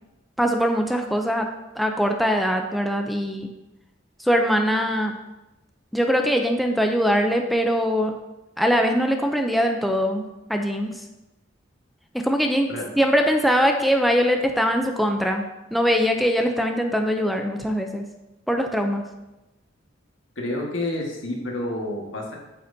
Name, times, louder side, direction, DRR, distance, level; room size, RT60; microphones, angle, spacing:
voice 1, 0.4-1.5 1.8-3.5 4.2-5.1 5.9-8.1 8.6-11.0 12.1-12.7 13.0-15.4 15.7-18.0 18.5-19.0, equal, ahead, 3 dB, 0.5 m, -22 dB
voice 2, 20.3-22.4, left 1 dB, 80° left, -1 dB, 1.8 m, -29 dB
8.7 x 7.8 x 2.7 m, 0.99 s
head